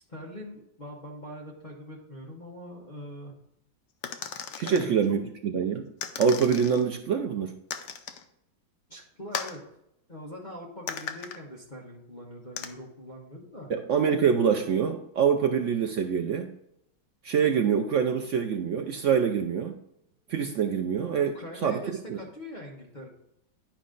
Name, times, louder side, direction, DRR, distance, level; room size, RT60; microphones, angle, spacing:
voice 1, 0.1-3.3 4.6-4.9 8.9-9.6 10.1-13.7 21.3-23.1, equal, 30° left, -2 dB, 1.3 m, -42 dB
sound 1, 4.0-4.9 6.0-6.8 7.7-8.2 9.3-9.6 10.9-11.4 12.6-12.7, left 8 dB, 75° left, 1.3 m, -36 dB
voice 2, 4.6-5.9 6.2-7.5 13.7-16.5 17.2-19.8 20.3-21.3 21.6-21.8 22.1-22.2, right 7 dB, 80° right, 4 dB, 0.6 m, -25 dB
10.5 x 5.2 x 3.8 m, 0.78 s
omnidirectional pair, 1.9 m